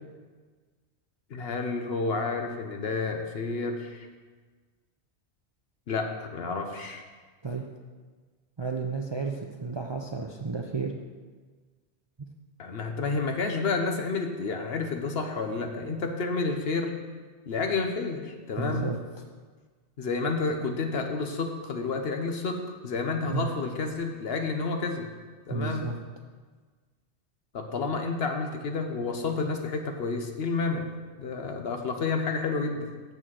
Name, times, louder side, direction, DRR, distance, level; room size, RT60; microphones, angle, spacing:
voice 1, 1.3-4.1 5.9-7.0 12.6-16.9 17.5-18.9 20.0-25.1 25.5-25.9 27.5-30.9 31.2-32.9, left 4 dB, 60° left, 4 dB, 1.1 m, -30 dB
voice 2, 8.6-10.9 18.6-19.0 23.2-23.5 25.5-26.0, right 4 dB, 35° right, 2 dB, 0.5 m, -32 dB
6.7 x 6.4 x 7.5 m, 1.4 s
omnidirectional pair, 1.2 m